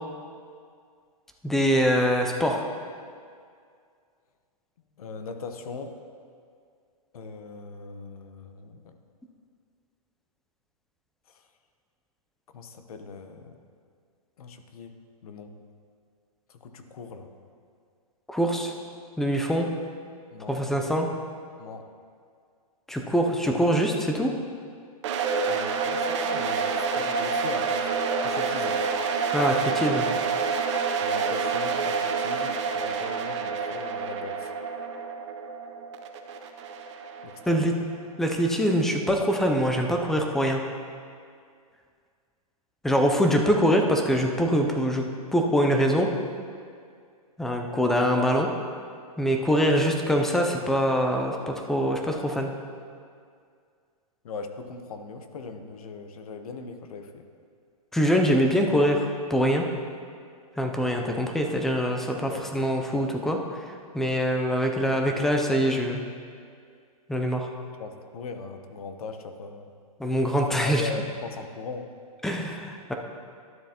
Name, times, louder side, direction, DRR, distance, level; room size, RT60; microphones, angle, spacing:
voice 1, 1.4-2.7 18.3-18.7 19.2-19.7 20.5-21.1 22.9-24.3 29.3-30.1 37.5-37.7 38.2-40.6 42.8-45.0 45.3-46.1 47.4-48.5 49.2-52.5 57.9-59.7 60.6-63.6 63.9-66.1 67.1-67.5 70.0-70.8 72.2-72.9, equal, ahead, 3 dB, 0.4 m, -24 dB
voice 2, 5.0-6.0 7.1-9.0 11.3-11.5 12.5-13.5 14.4-15.0 15.2-15.5 16.5-17.3 20.3-20.6 21.6-21.9 25.4-27.9 28.2-28.8 31.0-34.5 37.2-37.6 54.2-57.2 62.3-62.5 67.8-69.7 70.5-71.9, left 4 dB, 70° left, 7 dB, 0.9 m, -39 dB
sound 1, 25.0-37.9, right 5 dB, 50° right, 0.8 m, -28 dB
12.0 x 7.2 x 2.9 m, 2.2 s
hypercardioid pair, 145°, 20 cm